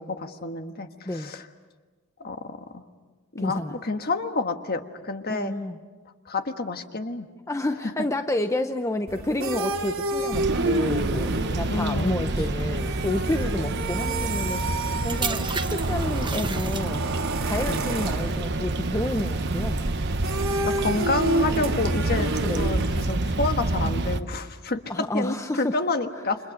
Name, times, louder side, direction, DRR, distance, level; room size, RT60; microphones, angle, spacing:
voice 1, 0.0-1.4 2.2-2.8 3.3-5.5 6.3-7.3 11.7-12.3 17.7-17.8 20.6-24.8 25.1-26.4, left 3 dB, 50° left, 7 dB, 1.5 m, -29 dB
voice 2, 3.4-3.8 5.3-5.8 7.5-14.6 15.0-17.0 17.4-19.9 22.4-22.7 24.9-25.8, left 1 dB, 15° left, 7 dB, 0.8 m, -30 dB
sound 1, 9.1-23.2, right 2 dB, 70° right, 2.9 m, -30 dB
sound 2, 10.3-24.2, right 2 dB, 55° right, 1.1 m, -28 dB
sound 3, 14.2-17.3 18.0-18.3, right 6 dB, 20° right, 0.9 m, -34 dB
30.0 x 27.0 x 6.5 m, 1.3 s
head